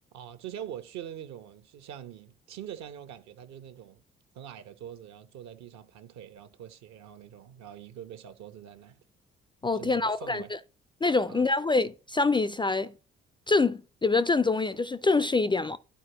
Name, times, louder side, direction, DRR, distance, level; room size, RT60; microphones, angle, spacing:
voice 1, 0.1-4.0 4.3-9.0 9.7-10.5 11.3-11.5, right 10 dB, 60° right, 1.0 m, -44 dB
voice 2, 9.6-10.4 11.0-12.9 13.5-15.8, left 3 dB, 15° left, 0.4 m, -25 dB
11.5 x 4.6 x 3.0 m
figure-of-eight pair, 40°, 31 cm